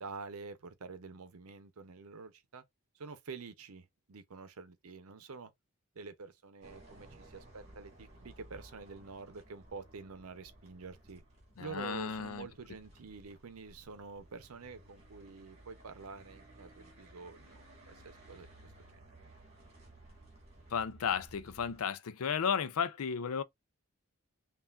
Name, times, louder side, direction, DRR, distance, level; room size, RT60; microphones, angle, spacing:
voice 1, 0.0-2.6 2.9-5.5 5.9-11.2 11.6-18.5 18.9-19.3, right 4 dB, 80° right, 0.7 m, -48 dB
sound 1, 6.6-21.8, right 1 dB, 30° right, 1.9 m, -57 dB
voice 2, 11.6-12.5 20.7-23.4, left 7 dB, 80° left, 0.4 m, -34 dB
5.6 x 2.4 x 2.4 m
head